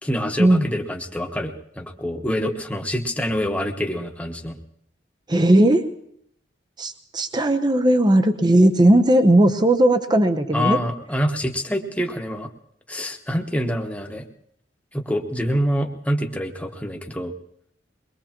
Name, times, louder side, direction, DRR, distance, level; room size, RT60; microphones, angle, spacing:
voice 1, 0.0-4.6 10.5-12.5 12.9-14.2 14.9-17.3, equal, 10° left, 2 dB, 1.2 m, -26 dB
voice 2, 5.3-5.9 6.8-10.8, right 1 dB, 25° right, 8 dB, 0.8 m, -17 dB
22.5 x 21.5 x 3.0 m, 0.70 s
head